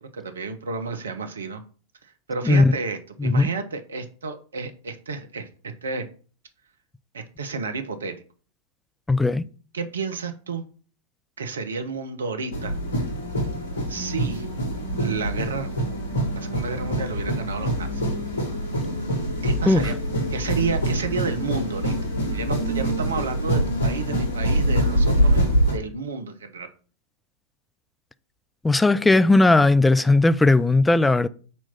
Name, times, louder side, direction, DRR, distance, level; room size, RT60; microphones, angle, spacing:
voice 1, 0.0-1.6 2.3-6.1 7.1-8.1 9.7-10.7 11.4-12.8 13.9-14.5 15.0-15.7 16.3-18.0 19.4-19.9 20.3-22.0 22.3-26.7, right 4 dB, 70° right, 0.9 m, -31 dB
voice 2, 9.1-9.4 19.7-19.8 28.6-31.3, left 2 dB, 10° left, 0.3 m, -17 dB
sound 1, 12.5-25.7, right 1 dB, 65° left, 2.0 m, -24 dB
4.4 x 4.3 x 5.7 m
figure-of-eight pair, 90°, 0 cm